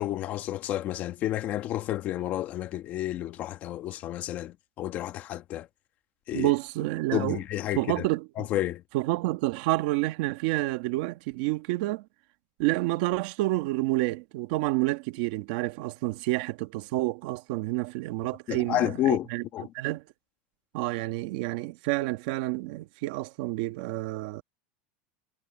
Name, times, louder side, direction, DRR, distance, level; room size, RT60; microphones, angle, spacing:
voice 1, 0.0-5.7 6.3-6.5 7.1-8.0 8.4-8.8 18.5-19.3 19.5-19.7, left 13 dB, 30° left, 1.2 m, -30 dB
voice 2, 6.3-7.4 7.7-8.5 8.9-12.0 12.6-19.4 19.7-20.0 20.7-24.4, right 19 dB, 50° right, 1.4 m, -29 dB
supercardioid pair, 175°, 6 cm